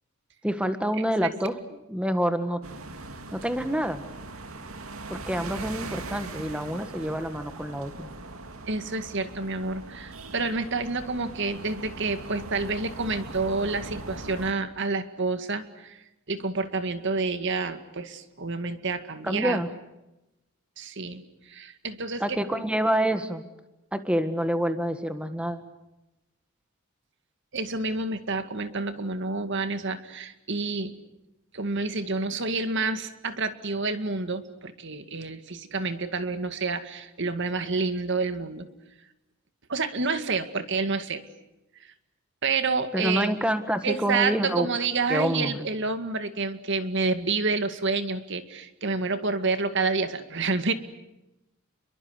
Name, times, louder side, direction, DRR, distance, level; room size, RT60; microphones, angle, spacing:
voice 1, 0.4-1.6 1.9-2.6 3.3-4.0 5.1-8.1 19.2-19.7 22.2-23.5 23.9-25.6 42.9-44.7 45.1-45.7, equal, 5° right, 9 dB, 1.6 m, -27 dB
sound 1, 2.6-14.5, right 2 dB, 80° right, 2.2 m, -40 dB
voice 2, 8.7-19.6 20.8-22.6 27.5-30.9 31.5-38.7 39.7-41.2 41.8-41.9 42.4-43.4 43.8-50.7, right 3 dB, 55° right, 9 dB, 2.1 m, -29 dB
29.5 x 23.0 x 8.1 m, 0.94 s
head